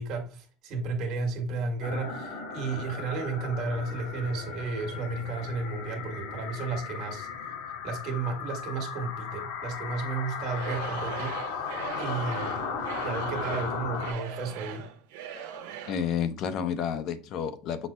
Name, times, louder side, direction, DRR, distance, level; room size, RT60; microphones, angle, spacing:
voice 1, 0.0-7.3 7.8-11.7 12.0-12.7 13.0-14.9, right 3 dB, 45° right, 1.5 m, -33 dB
sound 1, 1.8-14.1, left 5 dB, 80° left, 2.5 m, -36 dB
Singing / Crowd, 10.4-16.1, right 8 dB, 80° right, 0.8 m, -40 dB
voice 2, 15.9-17.9, left 8 dB, 45° left, 0.5 m, -30 dB
6.1 x 2.0 x 4.2 m
supercardioid pair, 150°, 0 cm